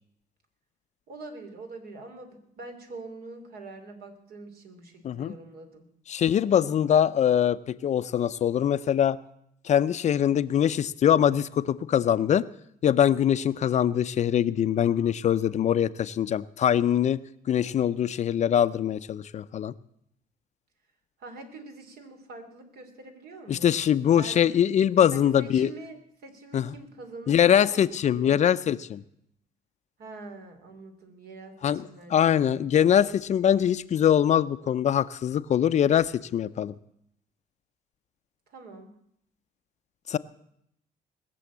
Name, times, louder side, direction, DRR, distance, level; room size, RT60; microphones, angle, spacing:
voice 1, 1.1-5.9 21.2-23.7 24.1-24.5 25.1-27.8 28.2-28.6 30.0-32.6 38.5-38.9, right 3 dB, 65° right, 5 dB, 3.1 m, -44 dB
voice 2, 5.0-5.4 6.1-9.2 9.6-12.5 12.8-17.2 17.5-19.7 23.5-25.7 26.5-26.7 27.3-29.0 31.6-36.8 40.1-40.2, left 9 dB, 45° left, 14 dB, 0.5 m, -23 dB
20.0 x 7.0 x 8.4 m, 0.74 s
cardioid pair, 110°, 17 cm